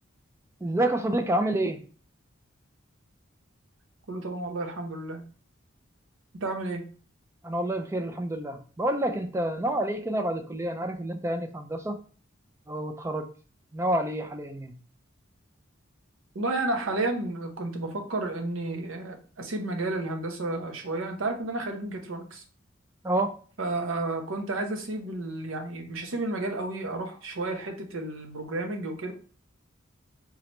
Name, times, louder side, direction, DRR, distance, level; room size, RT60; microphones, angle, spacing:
voice 1, 0.6-1.8 7.4-12.0 12.7-13.3 13.7-14.7 23.0-23.4, right 1 dB, 15° right, 6 dB, 0.3 m, -28 dB
voice 2, 4.1-5.2 6.4-6.8 16.3-22.4 23.6-29.1, right 2 dB, 85° right, 4 dB, 0.8 m, -32 dB
3.8 x 3.1 x 3.0 m, 0.39 s
head